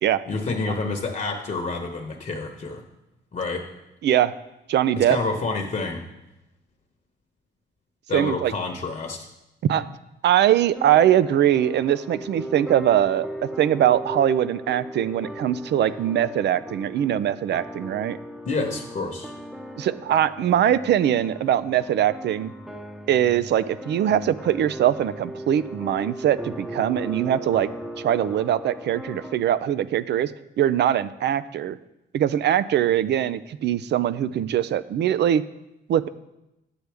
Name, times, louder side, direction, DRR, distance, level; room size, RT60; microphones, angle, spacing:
voice 1, 0.3-2.8 3.3-3.7 5.0-6.0 8.1-9.3 18.4-19.3, left 3 dB, 40° left, 2 dB, 1.1 m, -28 dB
voice 2, 4.0-4.3 4.7-5.2 8.1-8.5 9.7-9.9 10.2-18.2 19.8-22.5 23.1-27.7 28.0-30.3 30.6-31.8 32.1-35.4 35.9-36.1, right 11 dB, 60° right, 16 dB, 0.5 m, -22 dB
sound 1, 10.8-29.4, right 1 dB, 5° right, 0.8 m, -37 dB
9.6 x 7.9 x 3.4 m, 0.92 s
cardioid pair, 90°, 20 cm